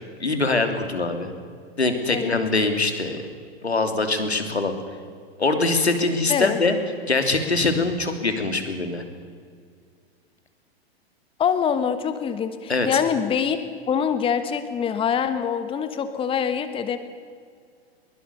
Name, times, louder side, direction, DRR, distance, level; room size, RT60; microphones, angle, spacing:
voice 1, 0.2-1.3 1.8-3.2 3.6-4.7 5.4-6.7 7.1-9.0 12.7-13.0, left 3 dB, 85° left, 7 dB, 3.1 m, -23 dB
voice 2, 11.4-13.6 13.9-17.0, left 7 dB, 15° left, 10 dB, 1.3 m, -24 dB
22.5 x 21.5 x 7.0 m, 2.1 s
figure-of-eight pair, 105°, 32 cm